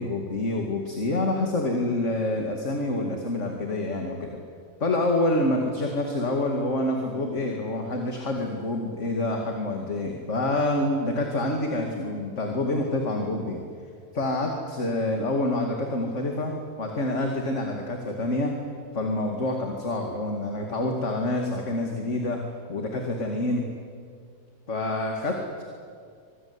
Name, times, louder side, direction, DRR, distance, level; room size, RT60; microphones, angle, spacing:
voice 1, 0.0-4.3 4.8-13.6 14.1-18.5 18.9-22.4 22.7-23.7 24.7-25.6, left 2 dB, 40° left, 2 dB, 2.6 m, -27 dB
25.5 x 21.0 x 9.7 m, 2.1 s
omnidirectional pair, 2.1 m